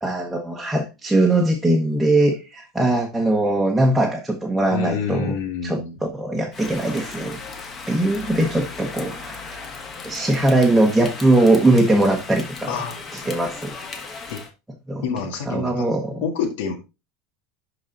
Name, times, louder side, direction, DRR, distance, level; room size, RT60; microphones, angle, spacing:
voice 1, 0.0-5.3 5.6-7.4 7.9-9.6 10.0-12.8 13.1-13.8 14.9-15.1 15.5-16.2, right 2 dB, 5° right, 1.1 m, -20 dB
voice 2, 4.7-6.0 12.7-13.0 14.3-14.4 15.0-15.9 16.2-16.8, left 6 dB, 80° left, 1.8 m, -27 dB
Rain, 6.5-14.5, left 4 dB, 20° left, 1.5 m, -36 dB
11.5 x 4.0 x 3.9 m
supercardioid pair, 165°, 0 cm